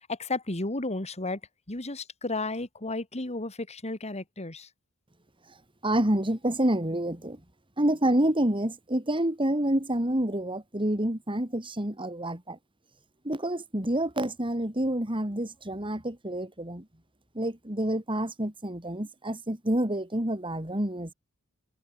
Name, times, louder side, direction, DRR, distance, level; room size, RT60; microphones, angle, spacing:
voice 1, 0.1-1.4 1.7-4.7, left 2 dB, 30° left, 2.7 m, -33 dB
voice 2, 5.8-7.4 7.8-12.6 13.2-16.8 17.4-21.1, right 1 dB, 25° right, 3.9 m, -28 dB
head